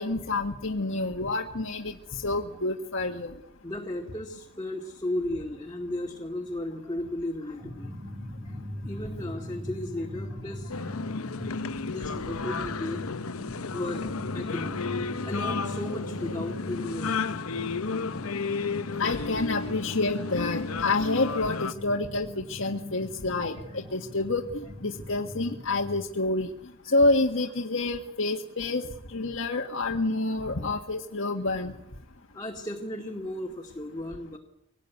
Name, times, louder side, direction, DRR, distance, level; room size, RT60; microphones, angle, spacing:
voice 1, 0.0-1.9 2.2-3.3 19.0-26.5 26.9-28.8 29.1-31.7, left 2 dB, 60° left, 2 dB, 1.7 m, -28 dB
voice 2, 3.6-7.9 8.4-8.6 8.9-11.5 11.9-13.1 13.7-14.8 15.1-17.6 18.1-18.5 23.5-23.6 26.9-27.0 30.7-30.8 32.3-34.4, left 1 dB, 20° left, 1 dB, 2.4 m, -35 dB
sound 1, 7.6-26.1, left 1 dB, 30° right, 2.4 m, -41 dB
sound 2, 10.7-21.7, left 4 dB, 80° left, 0.9 m, -33 dB
25.0 x 18.5 x 9.5 m, 0.81 s
head